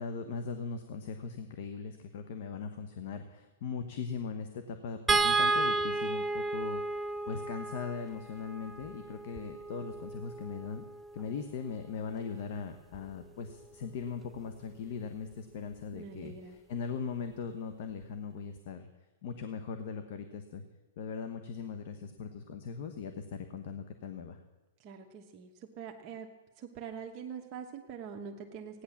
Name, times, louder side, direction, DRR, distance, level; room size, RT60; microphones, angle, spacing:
voice 1, 0.0-10.8 11.1-18.9 19.2-20.6 21.0-24.4, left 6 dB, 55° left, 7 dB, 1.1 m, -39 dB
sound 1, 5.1-11.4 12.9-13.1 13.5-13.6, right 3 dB, 10° right, 0.6 m, -32 dB
voice 2, 15.9-16.6 24.8-25.5 25.8-26.3 26.6-28.8, right 7 dB, 35° right, 2 dB, 1.2 m, -44 dB
16.0 x 9.9 x 7.2 m, 1.2 s
hypercardioid pair, 145°, 0 cm